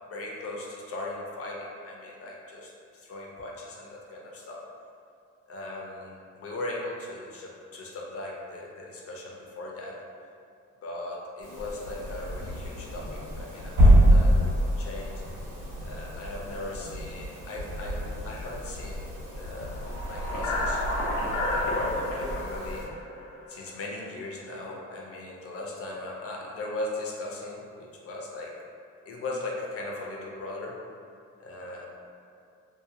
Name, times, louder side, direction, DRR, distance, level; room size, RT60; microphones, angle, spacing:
voice 1, 0.0-4.6 5.5-10.0 10.8-15.2 15.8-19.0 19.4-19.8 20.1-20.8 21.3-22.8 23.5-28.5 29.1-30.8 31.4-31.9, left 2 dB, 50° left, -2 dB, 0.6 m, -38 dB
sound 1, 11.4-22.8, equal, 65° right, 1.1 m, -27 dB
sound 2, 19.7-24.0, left 1 dB, 85° left, 0.7 m, -31 dB
2.8 x 2.2 x 2.5 m, 2.4 s
cardioid pair, 90°, 30 cm